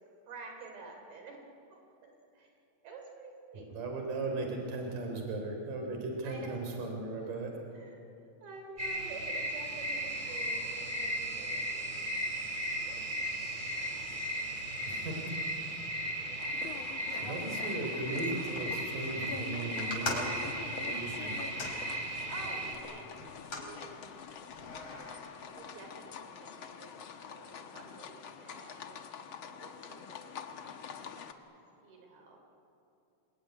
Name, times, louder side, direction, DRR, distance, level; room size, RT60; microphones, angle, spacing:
voice 1, 0.3-1.4 1.7-2.5 2.8-3.7 6.2-6.5 7.7-8.0 8.4-11.6 22.3-23.2 23.5-24.1 25.6-29.0 29.5-31.4 31.8-32.4, right 3 dB, 90° right, 3 dB, 5.4 m, -49 dB
voice 2, 3.7-7.5 14.9-15.3 17.1-20.2 20.8-21.3, right 2 dB, 60° right, 2 dB, 5.1 m, -37 dB
sound 1, 8.8-22.8, right 1 dB, 15° right, 3.2 m, -36 dB
sound 2, 16.4-31.3, left 7 dB, 60° left, 1.3 m, -46 dB
sound 3, 19.8-22.5 23.2-23.7 24.5-25.2, left 2 dB, 40° left, 4.9 m, -40 dB
27.5 x 22.5 x 9.7 m, 2.7 s
omnidirectional pair, 4.2 m